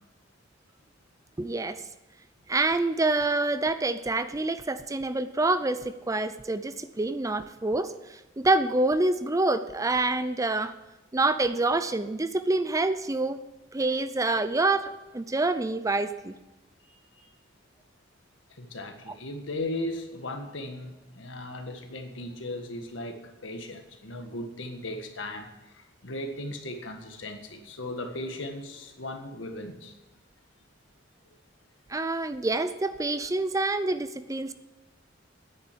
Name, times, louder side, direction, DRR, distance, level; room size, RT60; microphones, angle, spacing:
voice 1, 1.4-1.8 2.5-10.7 11.1-13.4 13.7-16.3 31.9-34.5, right 2 dB, 15° right, 12 dB, 0.5 m, -27 dB
voice 2, 16.8-17.3 18.5-30.0, left 1 dB, 70° left, 5 dB, 1.7 m, -37 dB
9.7 x 9.2 x 8.4 m, 1.0 s
head